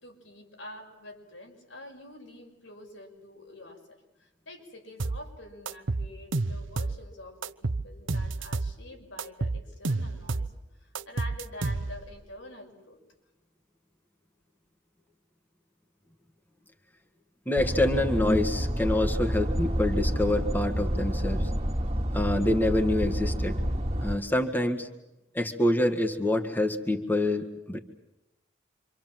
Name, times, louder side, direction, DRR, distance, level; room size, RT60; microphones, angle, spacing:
voice 1, 0.0-10.5 10.8-13.0, left 1 dB, 85° left, 1 dB, 6.1 m, -47 dB
sound 1, 5.0-5.2 5.7-7.0 7.4-8.8 9.2-10.5 10.9-12.1, right 3 dB, 75° right, 0.9 m, -30 dB
voice 2, 17.5-21.5 22.1-23.6 24.0-24.9 25.3-27.8, left 1 dB, 10° left, 4 dB, 1.7 m, -26 dB
sound 2, 17.6-24.2, equal, 35° right, 2.4 m, -29 dB
27.5 x 26.0 x 7.6 m, 0.93 s
head